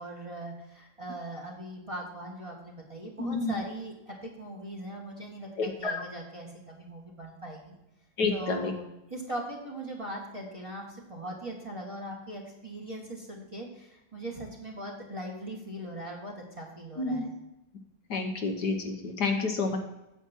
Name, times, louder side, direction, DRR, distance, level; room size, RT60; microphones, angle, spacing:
voice 1, 0.0-7.7 8.3-17.3, right 1 dB, 20° right, -3 dB, 1.8 m, -40 dB
voice 2, 3.2-3.6 5.6-5.9 8.2-8.7 17.0-17.3 18.1-19.8, left 3 dB, 65° left, 3 dB, 1.6 m, -29 dB
9.2 x 7.7 x 4.5 m, 0.92 s
omnidirectional pair, 2.0 m